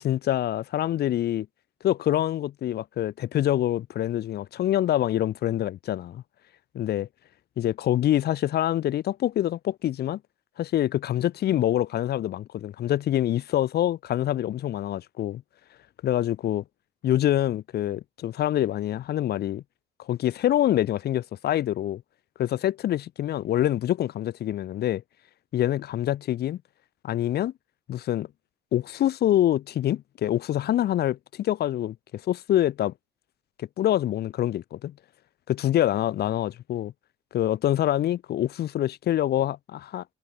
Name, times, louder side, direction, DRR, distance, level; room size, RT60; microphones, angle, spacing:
voice 1, 0.0-1.5 1.8-6.2 6.7-7.1 7.6-10.2 10.6-15.4 16.0-16.6 17.0-19.6 20.1-22.0 22.4-25.0 25.5-26.6 27.0-27.5 27.9-28.3 28.7-32.9 33.6-34.9 35.5-36.9 37.3-40.0, left 12 dB, 60° left, 2.7 m, -25 dB
cardioid pair, 155°, 18 cm